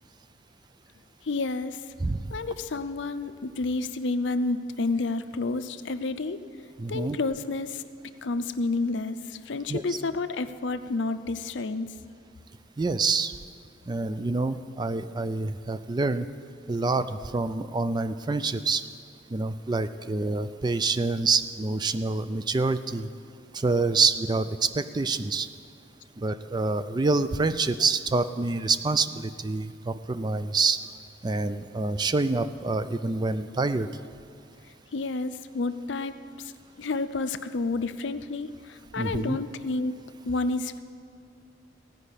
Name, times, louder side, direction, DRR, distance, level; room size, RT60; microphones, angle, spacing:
voice 1, 1.2-1.8 2.3-6.4 6.9-7.8 8.2-11.9 32.0-32.1 34.9-36.1 36.8-39.9 40.2-40.8, left 3 dB, 75° left, 11 dB, 0.6 m, -30 dB
voice 2, 6.8-7.2 9.7-10.0 12.8-13.3 13.9-16.3 16.7-18.8 19.3-23.1 23.5-25.5 26.2-30.8 31.2-33.9 39.0-39.4, right 3 dB, 25° right, 12 dB, 0.3 m, -27 dB
15.5 x 5.3 x 9.9 m, 2.4 s
head